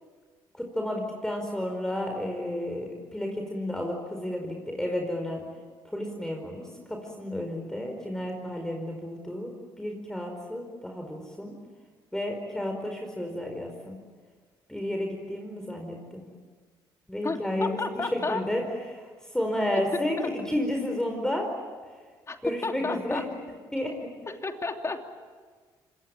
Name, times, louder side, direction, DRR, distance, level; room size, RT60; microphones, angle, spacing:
voice 1, 0.5-5.4 5.9-9.5 9.8-11.5 12.1-14.0 14.7-16.2 17.1-18.6 18.9-19.1 19.3-21.5 22.4-23.2 23.7-23.9, left 1 dB, 5° left, 2 dB, 4.8 m, -31 dB
voice 2, 17.2-18.4 19.9-20.3 22.3-22.4 22.6-23.3 24.3-25.0, left 3 dB, 30° left, 4 dB, 3.0 m, -32 dB
26.0 x 22.0 x 8.8 m, 1.5 s
supercardioid pair, 75°, 10 cm